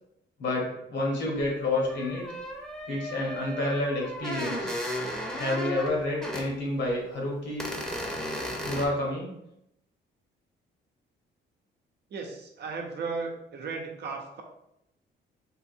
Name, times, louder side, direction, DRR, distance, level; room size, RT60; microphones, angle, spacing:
voice 1, 0.4-2.3 2.9-4.8 5.3-7.7 8.6-9.3, left 1 dB, 65° left, -2 dB, 1.3 m, -29 dB
sound 1, 1.4-1.5 1.8-6.5 6.9-7.0 7.6-8.9, equal, 5° left, 0.8 m, -35 dB
voice 2, 12.1-14.4, right 4 dB, 60° right, 2 dB, 0.7 m, -35 dB
3.6 x 2.6 x 2.6 m, 0.81 s
cardioid pair, 90°, 20 cm